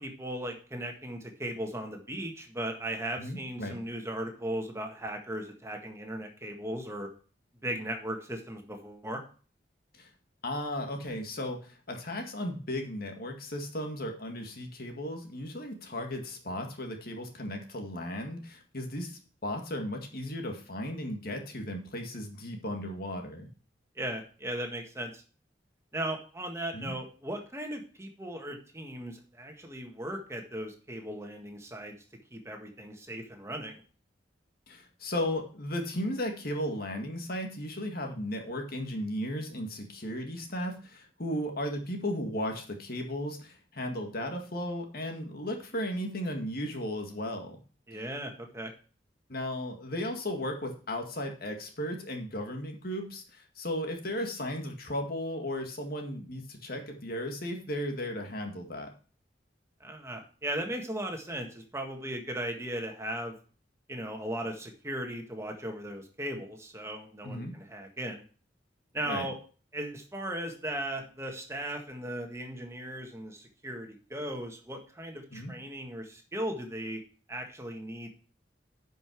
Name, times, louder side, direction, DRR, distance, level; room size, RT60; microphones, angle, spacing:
voice 1, 0.0-7.1 7.6-9.2 23.9-25.2 25.9-31.9 32.3-33.8 47.9-48.7 59.8-63.3 63.9-68.2 68.9-69.4 69.7-77.0 77.3-78.1, right 1 dB, 15° right, 3 dB, 1.7 m, -37 dB
voice 2, 3.2-3.8 9.9-10.1 10.4-23.5 26.7-26.9 34.7-47.6 49.3-58.9 67.2-67.5 69.1-69.3 75.3-75.5, left 1 dB, 55° left, 3 dB, 1.9 m, -35 dB
11.0 x 5.5 x 4.7 m, 0.38 s
head